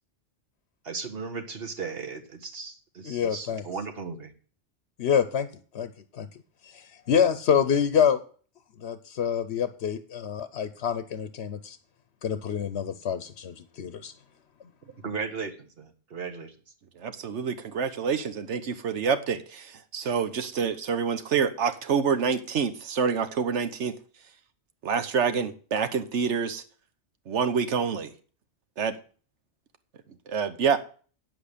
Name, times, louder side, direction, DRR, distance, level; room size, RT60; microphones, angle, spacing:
voice 1, 0.8-4.3 15.0-16.5, right 5 dB, 55° right, 1.5 m, -36 dB
voice 2, 3.0-3.6 5.0-5.5 5.7-6.3 6.6-8.2 8.8-11.8 12.2-14.1, left 8 dB, 70° left, 1.0 m, -26 dB
voice 3, 17.0-24.0 24.8-26.6 27.3-28.1 28.8-29.0 30.3-30.8, right 6 dB, 80° right, 1.3 m, -27 dB
9.3 x 7.9 x 6.7 m
omnidirectional pair, 1.2 m